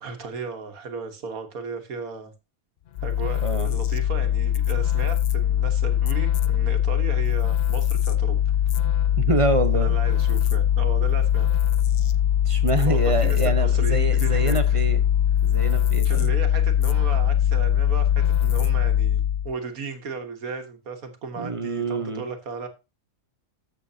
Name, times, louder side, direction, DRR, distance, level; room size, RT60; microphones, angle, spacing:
voice 1, 0.0-2.3 3.0-8.4 9.7-11.5 12.9-14.8 16.0-22.7, right 4 dB, 85° right, 1.8 m, -35 dB
sound 1, 3.0-19.5, left 10 dB, 60° left, 0.7 m, -21 dB
voice 2, 9.2-9.9 12.5-15.0 15.4-16.3 21.4-22.3, right 3 dB, 25° right, 0.8 m, -26 dB
14.0 x 6.8 x 2.7 m
omnidirectional pair, 1.5 m